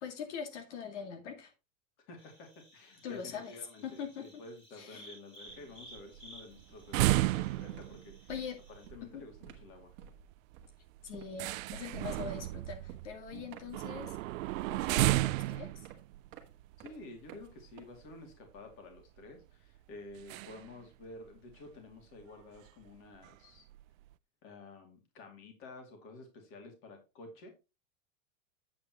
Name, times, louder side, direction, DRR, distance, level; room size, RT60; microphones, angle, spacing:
voice 1, 0.0-1.5 3.0-4.4 4.7-5.1 8.3-8.6 9.0-9.2 11.0-14.2 14.6-15.9, left 7 dB, 65° left, 2.3 m, -43 dB
voice 2, 2.1-8.3 8.7-9.9 16.8-23.7 24.4-27.5, left 2 dB, 30° left, 2.5 m, -51 dB
sound 1, 2.2-8.9, right 1 dB, 15° left, 2.7 m, -57 dB
sound 2, 5.5-18.1 18.6-18.7 18.9-19.2 20.2-20.8 21.0-21.1 21.5-21.6 22.2-22.3 22.6-22.9 23.2-24.0, right 18 dB, 85° right, 0.5 m, -34 dB
sound 3, 6.5-6.7 7.0-18.4, right 8 dB, 30° right, 1.5 m, -54 dB
8.7 x 8.6 x 3.0 m
supercardioid pair, 175°, 38 cm